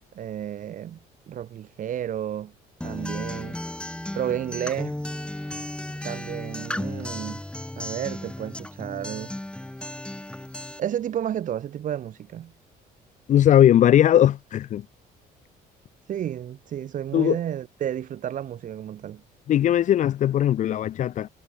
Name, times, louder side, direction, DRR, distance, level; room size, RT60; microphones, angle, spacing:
voice 1, 0.1-1.0 1.3-2.5 2.8-3.6 4.1-4.9 6.0-7.4 7.8-9.3 10.8-12.5 16.1-19.2, right 10 dB, 50° right, 1.1 m, -31 dB
Acoustic guitar, 2.8-10.8, left 1 dB, 5° left, 4.1 m, -34 dB
voice 2, 13.3-14.8 17.1-17.4 19.5-21.3, left 11 dB, 45° left, 0.5 m, -19 dB
cardioid pair, 110°, 17 cm